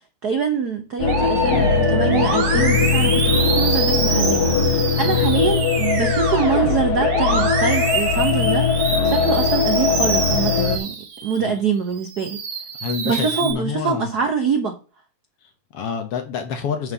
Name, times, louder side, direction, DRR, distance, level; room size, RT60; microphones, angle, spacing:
voice 1, 0.2-11.0 11.2-12.4 13.0-14.8, right 6 dB, 80° right, 5 dB, 0.8 m, -24 dB
sound 1, 1.0-10.8, left 5 dB, 80° left, 3.0 m, -20 dB
Musical instrument, 1.1-11.5 12.0-13.5, right 4 dB, 50° right, 2.4 m, -26 dB
voice 2, 1.5-2.9 5.0-5.6 11.4-11.6 12.8-14.1 15.4-16.9, left 6 dB, 60° left, 6 dB, 1.9 m, -29 dB
7.5 x 4.5 x 6.7 m, 0.34 s
omnidirectional pair, 3.3 m